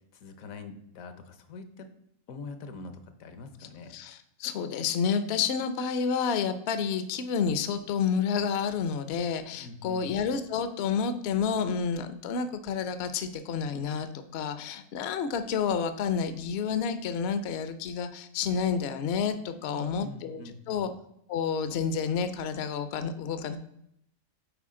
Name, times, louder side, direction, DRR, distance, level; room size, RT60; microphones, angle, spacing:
voice 1, 0.1-1.9 2.3-4.0 9.6-10.1 19.7-20.9, left 4 dB, 75° left, 9 dB, 1.2 m, -43 dB
voice 2, 3.9-20.9 21.3-23.6, left 6 dB, 60° left, 10 dB, 0.7 m, -30 dB
8.3 x 4.4 x 3.7 m, 0.76 s
omnidirectional pair, 1.5 m